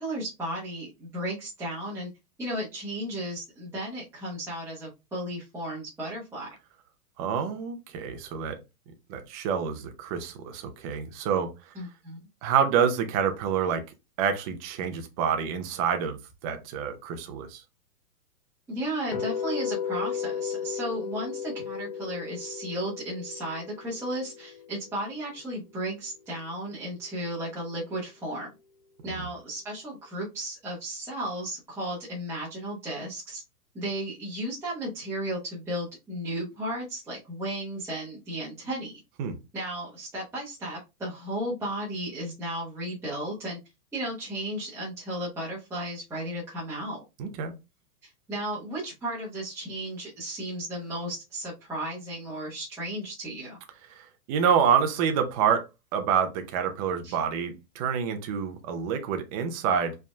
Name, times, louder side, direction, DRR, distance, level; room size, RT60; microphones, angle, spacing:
voice 1, 0.0-2.1 2.4-6.5 11.7-12.2 18.7-28.5 29.0-33.4 33.7-39.0 39.5-43.6 43.9-47.0 48.0-53.6 57.0-57.2, right 1 dB, 5° right, 1.1 m, -34 dB
voice 2, 7.2-8.6 9.1-11.5 12.4-13.8 14.2-17.6 29.0-29.3 39.2-39.3 47.2-47.5 54.0-55.7 55.9-59.9, right 7 dB, 25° right, 0.6 m, -27 dB
sound 1, 19.1-25.2, left 7 dB, 25° left, 0.5 m, -35 dB
4.8 x 3.6 x 2.3 m
hypercardioid pair, 145°, 46 cm